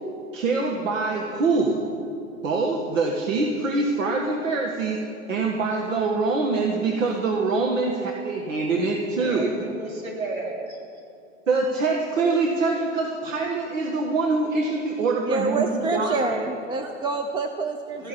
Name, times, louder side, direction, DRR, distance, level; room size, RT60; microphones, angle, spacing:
voice 1, 0.3-1.8 2.4-5.0 5.3-9.6 11.5-16.4, right 3 dB, 70° right, 1 dB, 1.9 m, -24 dB
voice 2, 9.2-11.1 16.7-16.9 18.0-18.1, right 2 dB, 90° right, -2 dB, 4.2 m, -34 dB
voice 3, 15.2-18.1, right 3 dB, 10° right, 6 dB, 0.6 m, -27 dB
14.0 x 9.0 x 9.9 m, 2.6 s
hypercardioid pair, 110°, 39 cm